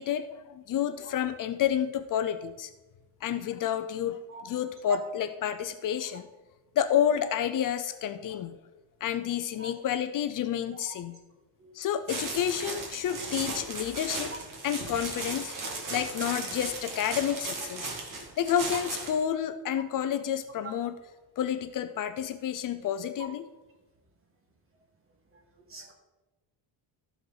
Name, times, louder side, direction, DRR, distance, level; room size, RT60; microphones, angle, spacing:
voice 1, 0.0-2.7 3.2-6.3 6.8-8.6 9.0-11.2 11.7-14.3 14.6-15.5 15.9-17.9 18.4-21.0 21.4-23.5, left 9 dB, 50° left, 10 dB, 0.6 m, -30 dB
sound 1, 12.1-19.2, right 3 dB, 50° right, 2.1 m, -36 dB
voice 2, 15.6-16.0 25.7-25.9, right 6 dB, 30° right, 3 dB, 1.6 m, -44 dB
14.0 x 6.4 x 4.0 m, 1.1 s
cardioid pair, 160°, 41 cm